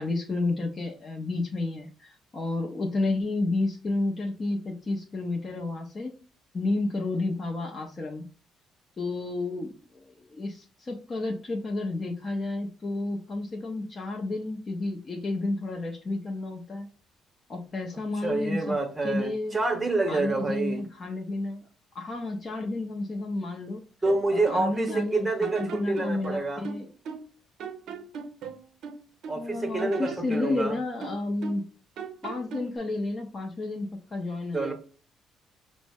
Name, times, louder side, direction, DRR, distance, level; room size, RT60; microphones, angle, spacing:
voice 1, 0.0-6.1 6.5-8.2 9.0-16.9 17.5-18.8 19.0-19.5 20.1-21.6 21.9-23.8 24.3-25.2 25.6-26.9 29.4-31.6 32.2-34.7, left 2 dB, 30° left, 0 dB, 0.6 m, -31 dB
voice 2, 18.2-20.8 24.0-26.6 29.3-30.8 34.5-34.7, right 2 dB, 15° right, 4 dB, 0.9 m, -27 dB
sound 1, 24.1-25.1 25.4-27.3 27.6-29.4 29.8-31.7 32.0-32.8, right 6 dB, 65° right, 0.6 m, -39 dB
5.2 x 2.0 x 3.5 m, 0.37 s
cardioid pair, 135°, 0 cm